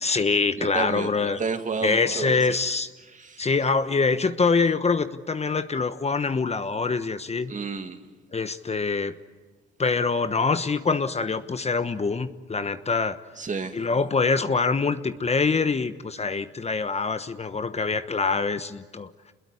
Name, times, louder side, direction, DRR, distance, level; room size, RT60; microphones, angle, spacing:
voice 1, 0.0-1.4 1.8-2.9 3.4-7.5 8.3-9.1 9.8-13.2 13.7-19.3, left 4 dB, 30° left, 11 dB, 1.2 m, -25 dB
voice 2, 0.6-2.6 3.1-3.5 7.5-8.0 13.4-13.8, right 4 dB, 35° right, 7 dB, 2.5 m, -31 dB
28.0 x 21.5 x 9.8 m, 1.4 s
supercardioid pair, 70°, 21 cm